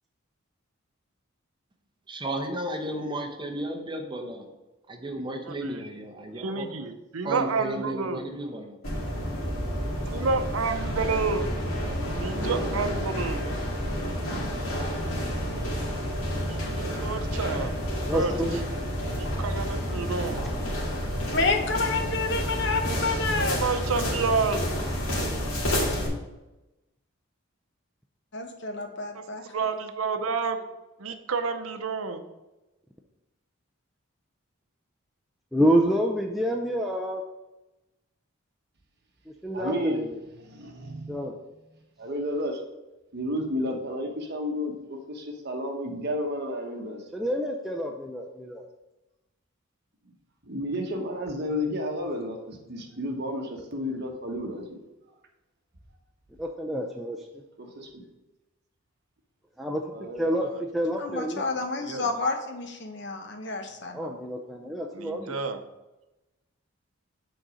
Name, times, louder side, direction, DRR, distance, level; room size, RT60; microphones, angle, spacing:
voice 1, 2.1-4.5 4.9-6.7 7.2-8.8, right 1 dB, 20° right, 2 dB, 0.8 m, -33 dB
voice 2, 5.4-5.8 6.4-8.2 10.1-11.5 12.1-13.5 16.5-17.7 18.1-18.6 19.2-20.4 23.4-24.8 29.1-30.7 31.0-32.2 60.4-60.6 61.8-62.1 64.9-65.6, right 4 dB, 80° right, 8 dB, 0.6 m, -30 dB
sound 1, 8.8-26.1, equal, 80° left, 1.9 m, -29 dB
voice 3, 18.1-18.6 35.5-37.2 39.4-40.2 41.1-41.3 47.1-48.6 56.4-57.2 59.6-59.8 60.2-61.4 63.9-65.4, equal, ahead, 0 dB, 0.4 m, -27 dB
voice 4, 21.3-23.6 28.3-29.4 61.0-64.1, left 3 dB, 55° left, 5 dB, 0.9 m, -29 dB
voice 5, 39.5-40.0 40.4-41.2 42.0-42.7 43.1-47.1 50.5-54.8 57.6-58.0 59.9-60.3, equal, 50° right, 2 dB, 1.1 m, -32 dB
6.3 x 4.0 x 6.2 m, 1.0 s
head